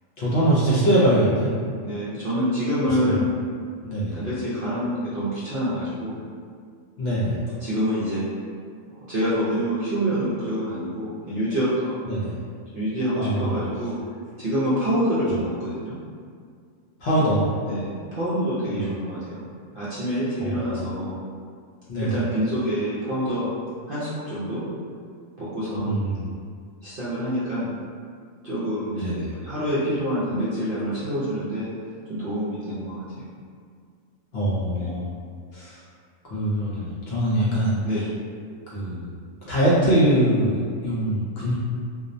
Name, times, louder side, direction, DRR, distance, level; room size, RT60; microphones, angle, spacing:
voice 1, 0.2-1.5 2.8-3.3 3.8-4.2 7.0-7.4 12.0-12.3 13.2-13.7 17.0-17.5 18.7-18.9 20.4-20.8 21.9-22.2 25.8-26.3 29.0-29.3 34.3-35.1 35.5-35.8 36.3-38.0 38.7-39.1 39.5-41.5, right 1 dB, 60° left, -8 dB, 0.7 m, -23 dB
voice 2, 1.8-3.3 4.1-6.2 7.6-8.2 8.9-12.0 12.7-14.0 14.4-16.0 17.7-19.5 19.7-21.2 22.0-23.5 23.9-24.7 25.4-26.0 26.8-27.7 28.4-31.7 32.1-33.2 34.8-34.9 37.8-38.1, equal, 55° right, -11 dB, 0.6 m, -26 dB
2.4 x 2.0 x 2.5 m, 2.1 s
omnidirectional pair, 1.4 m